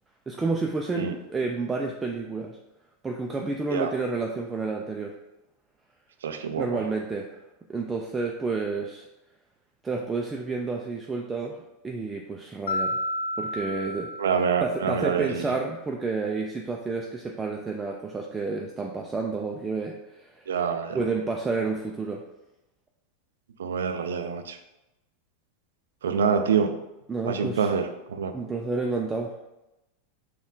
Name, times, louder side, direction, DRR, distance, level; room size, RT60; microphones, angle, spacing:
voice 1, 0.3-2.6 3.0-5.1 6.6-7.3 7.7-9.1 9.8-11.6 11.8-13.0 13.4-14.1 14.6-20.6 20.9-22.2 27.1-27.7 28.3-29.4, right 3 dB, 15° right, 0 dB, 0.4 m, -30 dB
voice 2, 6.2-6.7 14.2-15.5 20.5-21.0 23.6-24.6 26.0-26.7 27.2-28.3, right 6 dB, 85° right, 7 dB, 0.4 m, -26 dB
Mallet percussion, 12.7-15.0, left 1 dB, 80° left, 0.3 m, -31 dB
4.2 x 2.3 x 3.8 m, 0.94 s
hypercardioid pair, 110°, 0 cm